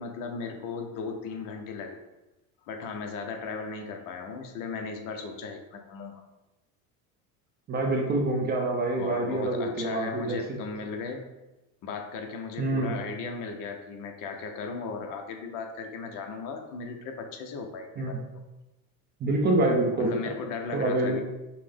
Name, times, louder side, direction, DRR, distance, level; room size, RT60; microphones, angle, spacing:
voice 1, 0.0-2.0 2.7-6.2 8.9-11.3 11.8-18.2 20.0-21.2, left 5 dB, 50° left, 4 dB, 0.6 m, -36 dB
voice 2, 7.7-10.6 12.6-13.0 18.0-18.2 19.2-20.2 20.7-21.2, right 2 dB, 25° right, 0 dB, 0.5 m, -26 dB
5.5 x 2.1 x 3.4 m, 1.0 s
cardioid pair, 135°, 41 cm